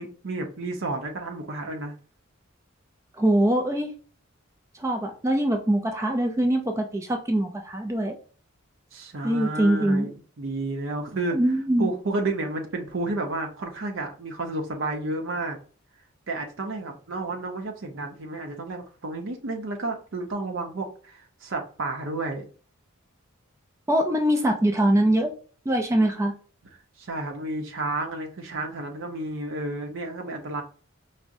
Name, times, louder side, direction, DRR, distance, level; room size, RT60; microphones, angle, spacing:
voice 1, 0.0-1.9 8.9-10.1 10.4-11.4 11.8-15.6 16.3-22.5 27.0-30.6, right 2 dB, 60° right, 3 dB, 0.7 m, -31 dB
voice 2, 3.2-3.9 4.7-8.1 9.2-10.1 11.3-11.9 23.9-25.3 25.7-26.3, right 1 dB, 15° right, 3 dB, 0.3 m, -23 dB
4.7 x 2.1 x 2.6 m, 0.40 s
head